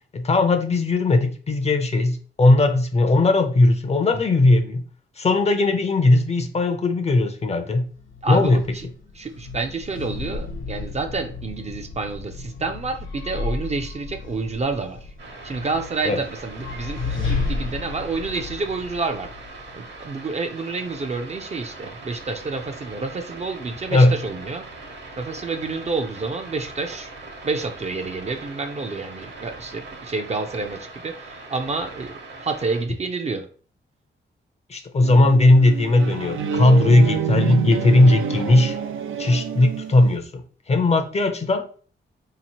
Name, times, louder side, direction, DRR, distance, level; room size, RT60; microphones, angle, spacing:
voice 1, 0.1-4.8 5.2-7.9 8.3-8.6 16.0-16.2 23.9-24.1 34.7-38.8 39.2-40.4 40.7-41.6, left 2 dB, 35° left, 6 dB, 0.5 m, -18 dB
sound 1, 7.9-20.0, left 4 dB, 75° left, 1.1 m, -33 dB
voice 2, 8.2-8.9 9.1-15.1 15.4-19.3 19.7-24.7 25.2-27.1 27.4-33.5, right 3 dB, 35° right, 6 dB, 0.4 m, -29 dB
sound 2, 15.2-32.8, right 3 dB, 60° right, 1.0 m, -41 dB
sound 3, 35.0-40.2, right 7 dB, 85° right, 0.5 m, -27 dB
4.0 x 2.8 x 2.9 m, 0.42 s
wide cardioid pair, 120°, 20 cm